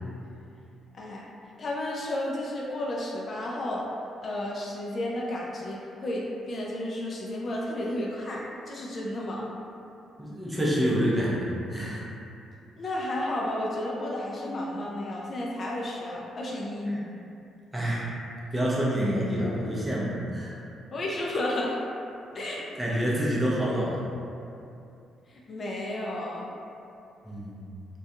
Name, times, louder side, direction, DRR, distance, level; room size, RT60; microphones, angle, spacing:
voice 1, 1.6-3.9 4.2-9.5 12.8-16.9 20.9-21.8 22.3-22.7 25.3-26.5, left 1 dB, 45° left, -3 dB, 0.3 m, -32 dB
voice 2, 10.2-12.0 16.8-17.0 17.7-18.1 18.5-20.5 22.8-24.0 27.2-27.7, equal, 10° right, -6 dB, 0.6 m, -27 dB
2.3 x 2.2 x 2.7 m, 2.7 s
cardioid pair, 90°, 0 cm